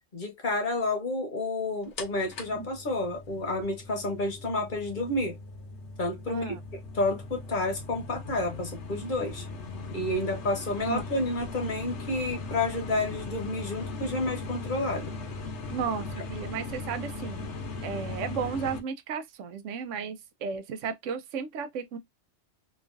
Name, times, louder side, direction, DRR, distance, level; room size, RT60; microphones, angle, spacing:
voice 1, 0.1-5.4 6.0-6.6 6.9-9.4 9.9-15.1, left 2 dB, 45° left, 0.9 m, -30 dB
sound 1, 2.0-18.8, left 3 dB, 70° left, 1.0 m, -39 dB
voice 2, 6.3-6.6 10.8-11.0 15.7-17.5 17.8-22.0, right 6 dB, 80° right, 0.9 m, -34 dB
2.9 x 2.4 x 2.4 m
omnidirectional pair, 1.3 m